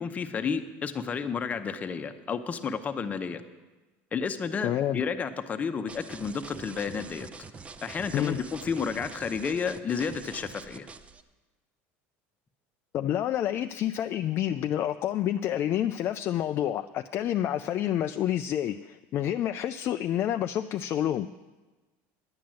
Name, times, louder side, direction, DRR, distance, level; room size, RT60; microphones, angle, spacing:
voice 1, 0.0-3.4 4.1-7.3 7.8-10.9, left 6 dB, 25° left, 9 dB, 0.8 m, -31 dB
voice 2, 4.6-5.0 8.1-8.4 12.9-21.3, left 11 dB, 40° left, 8 dB, 0.3 m, -28 dB
sound 1, 5.9-11.2, right 4 dB, 20° right, 0.5 m, -45 dB
10.5 x 8.7 x 7.6 m, 1.2 s
cardioid pair, 140°, 6 cm